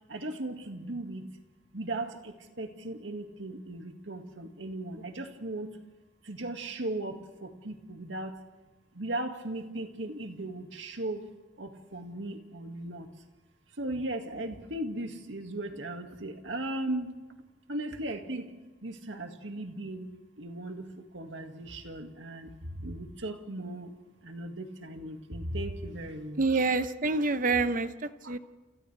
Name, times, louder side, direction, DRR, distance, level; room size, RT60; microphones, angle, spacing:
voice 1, 0.1-1.2 1.7-5.7 6.2-8.4 8.9-11.3 11.6-13.1 13.8-17.2 17.7-18.5 18.8-20.1 20.4-23.9 24.2-26.6 28.2-28.3, right 1 dB, 75° right, 5 dB, 2.0 m, -37 dB
voice 2, 26.4-27.9 28.3-28.4, right 3 dB, 45° right, 11 dB, 0.9 m, -26 dB
28.5 x 28.0 x 3.4 m, 1.2 s
head